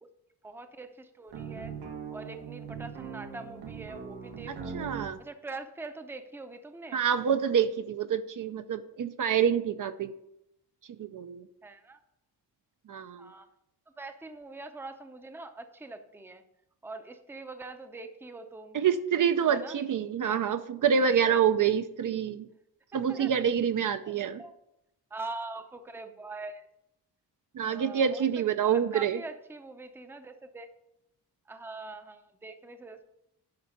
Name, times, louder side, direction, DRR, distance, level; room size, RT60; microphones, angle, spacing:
voice 1, 0.4-1.7 2.1-4.9 5.2-7.0 11.6-12.0 13.2-13.5 14.0-16.4 16.8-18.8 19.5-19.8 22.9-23.3 24.0-24.1 24.4-24.5 25.1-26.7 27.6-30.7 31.5-33.0, right 3 dB, 5° right, 8 dB, 0.5 m, -43 dB
sound 1, 1.3-5.1, right 6 dB, 90° right, 1.5 m, -40 dB
voice 2, 4.7-5.2 6.9-10.1 10.9-11.5 12.9-13.3 18.7-22.5 22.9-24.4 27.5-29.2, right 8 dB, 55° right, 10 dB, 0.5 m, -27 dB
10.5 x 5.6 x 5.1 m, 0.83 s
wide cardioid pair, 165°, 39 cm